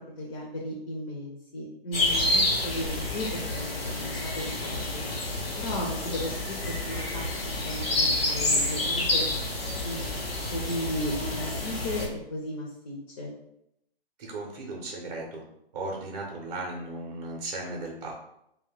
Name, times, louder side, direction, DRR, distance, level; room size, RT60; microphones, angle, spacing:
voice 1, 0.1-5.0 5.6-7.2 7.6-9.2 9.8-10.2 10.5-13.3, left 1 dB, 35° left, -2 dB, 0.6 m, -35 dB
sound 1, 1.9-12.1, left 2 dB, 75° left, 0.9 m, -29 dB
voice 2, 14.2-15.4 15.7-18.1, right 2 dB, 40° right, 0 dB, 0.6 m, -36 dB
2.6 x 2.2 x 3.6 m, 0.80 s
figure-of-eight pair, 125°, 30 cm